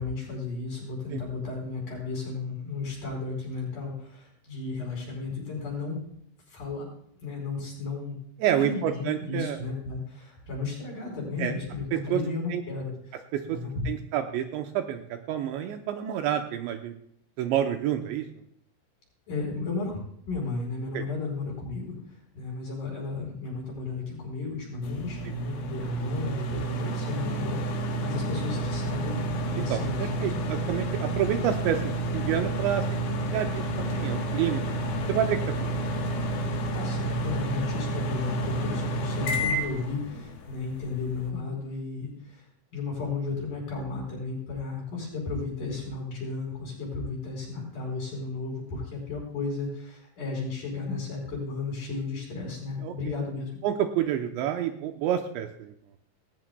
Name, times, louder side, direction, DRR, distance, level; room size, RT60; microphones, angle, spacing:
voice 1, 0.0-6.0 6.5-6.9 7.2-13.2 13.5-13.9 19.3-29.2 29.5-30.4 36.7-42.5 42.7-53.6, left 4 dB, 45° left, 0 dB, 6.0 m, -34 dB
voice 2, 8.4-9.6 11.4-11.5 11.9-12.2 12.5-12.6 13.3-13.6 13.9-15.0 15.3-16.9 17.4-18.3 20.9-21.0 29.7-34.6 35.1-35.7 52.8-52.9 53.6-55.7, right 10 dB, 80° right, 5 dB, 2.8 m, -28 dB
sound 1, 24.8-41.3, right 1 dB, 65° left, 3.0 m, -30 dB
sound 2, 28.3-37.7, left 2 dB, 30° right, 3.7 m, -42 dB
18.5 x 17.0 x 2.3 m, 0.68 s
omnidirectional pair, 5.6 m